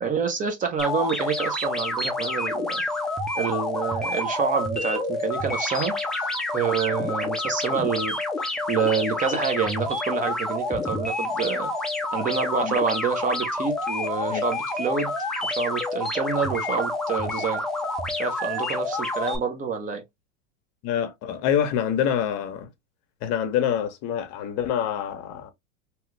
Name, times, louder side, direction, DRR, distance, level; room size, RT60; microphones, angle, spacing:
voice 1, 0.0-2.8 3.3-8.2 8.7-11.7 12.1-15.1 15.4-17.6 18.2-20.0, right 6 dB, 20° right, 0.7 m, -27 dB
sound 1, 0.8-19.4, left 2 dB, ahead, 0.3 m, -28 dB
voice 2, 20.8-22.7 23.2-25.5, left 9 dB, 45° left, 0.8 m, -26 dB
3.0 x 2.3 x 3.1 m
supercardioid pair, 125°, 37 cm